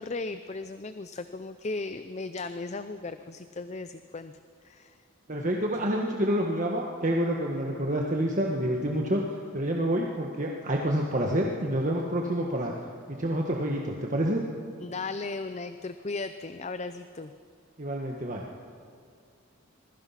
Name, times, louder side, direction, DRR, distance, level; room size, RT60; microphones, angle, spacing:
voice 1, 0.0-4.3 4.6-5.0 14.8-17.3, left 3 dB, 30° left, 10 dB, 0.5 m, -36 dB
voice 2, 5.3-9.2 9.5-12.7 13.1-14.4 17.8-18.4, right 1 dB, 35° right, 0 dB, 1.5 m, -28 dB
26.5 x 21.0 x 5.9 m, 2.3 s
head